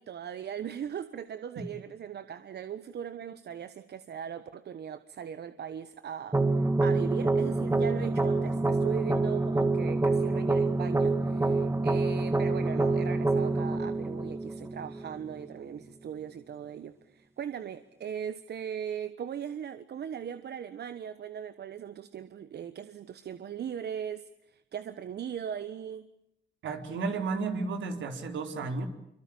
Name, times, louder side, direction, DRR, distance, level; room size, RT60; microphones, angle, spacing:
voice 1, 0.0-6.4 6.8-26.0, right 8 dB, 55° right, 12 dB, 1.3 m, -39 dB
sea carousel, 6.3-15.3, right 3 dB, 15° right, 2.1 m, -27 dB
voice 2, 26.6-28.9, right 4 dB, 70° right, 6 dB, 4.0 m, -33 dB
26.5 x 24.0 x 8.7 m, 0.81 s
cardioid pair, 90°, 20 cm